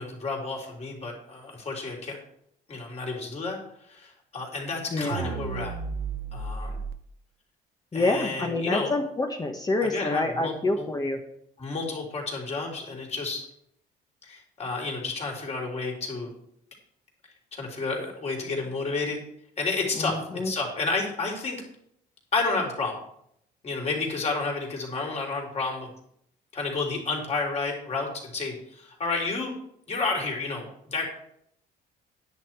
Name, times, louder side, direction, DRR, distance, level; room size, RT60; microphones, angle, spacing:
voice 1, 0.0-2.2 2.7-3.6 3.8-5.8 6.3-6.8 7.9-8.9 9.8-10.9 11.6-13.4 14.2-16.3 17.5-19.2 19.6-20.2 20.4-21.6 22.3-23.0 23.6-25.9 26.5-29.5 29.9-31.0, left 3 dB, 40° left, 0 dB, 3.8 m, -31 dB
voice 2, 4.9-5.4 7.9-11.2 20.0-20.5, left 2 dB, 20° left, 3 dB, 1.2 m, -27 dB
sound 1, 5.1-6.9, right 5 dB, 65° right, 0.9 m, -33 dB
10.0 x 9.2 x 4.6 m, 0.71 s
cardioid pair, 110°, 17 cm